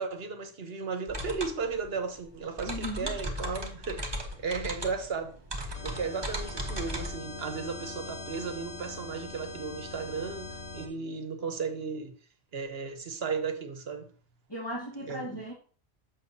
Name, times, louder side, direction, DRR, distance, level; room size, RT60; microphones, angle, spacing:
voice 1, 0.0-5.4 5.8-12.1 12.5-14.1 15.1-15.3, right 5 dB, 70° right, 1.3 m, -35 dB
sound 1, 1.1-7.1, equal, 25° right, 1.2 m, -37 dB
voice 2, 2.7-3.2 14.5-15.5, equal, 25° left, 1.6 m, -37 dB
sound 2, 5.7-10.9, left 3 dB, 80° left, 1.5 m, -42 dB
8.2 x 6.3 x 2.7 m
omnidirectional pair, 1.1 m